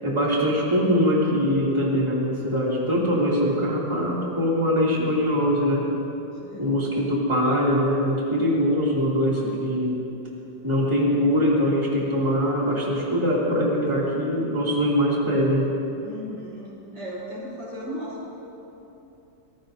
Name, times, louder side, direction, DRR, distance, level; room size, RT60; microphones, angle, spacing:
voice 1, 0.0-5.9 6.6-10.1 10.6-15.7, equal, 15° right, -6 dB, 2.6 m, -22 dB
voice 2, 6.3-6.7 10.7-10.9 16.0-18.5, equal, 80° right, -7 dB, 4.9 m, -37 dB
25.0 x 18.0 x 2.7 m, 2.9 s
omnidirectional pair, 2.0 m